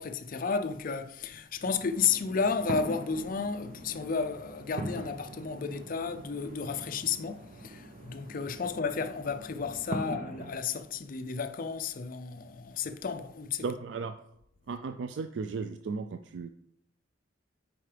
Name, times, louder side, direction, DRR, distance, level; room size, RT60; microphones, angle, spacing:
voice 1, 0.0-13.6, left 5 dB, 45° left, 0.5 m, -32 dB
sound 1, 1.6-10.5, right 1 dB, 45° right, 0.8 m, -42 dB
voice 2, 13.6-14.2 14.7-16.5, right 4 dB, 65° right, 0.3 m, -35 dB
9.0 x 4.5 x 3.3 m
head